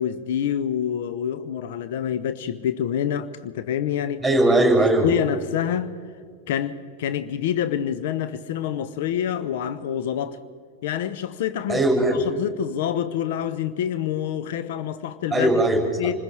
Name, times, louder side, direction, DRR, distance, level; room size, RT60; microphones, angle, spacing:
voice 1, 0.0-4.2 5.0-5.9 6.5-10.4 10.8-11.8 12.2-15.6 16.0-16.2, left 10 dB, 55° left, 0.8 m, -27 dB
voice 2, 4.2-5.1 11.7-12.2 15.3-16.1, right 1 dB, ahead, 6.1 m, -19 dB
28.5 x 21.0 x 4.4 m
figure-of-eight pair, 90°, 0 cm